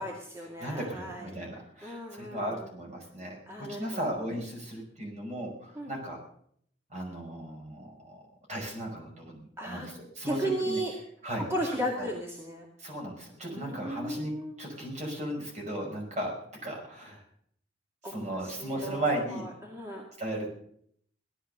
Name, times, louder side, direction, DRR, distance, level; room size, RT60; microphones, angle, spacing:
voice 1, 0.0-1.3 1.8-2.7 3.5-4.2 5.8-5.9 9.6-9.9 10.2-10.9 11.4-12.7 13.4-14.6 18.0-20.0, equal, 15° right, -1 dB, 2.2 m, -35 dB
voice 2, 0.6-6.2 6.9-8.2 8.5-10.8 11.2-11.5 12.0-12.1 12.8-14.3 14.6-16.3 16.6-17.2 18.0-19.5 20.2-20.5, right 1 dB, 40° right, 1 dB, 5.3 m, -36 dB
17.0 x 12.0 x 6.6 m, 0.66 s
head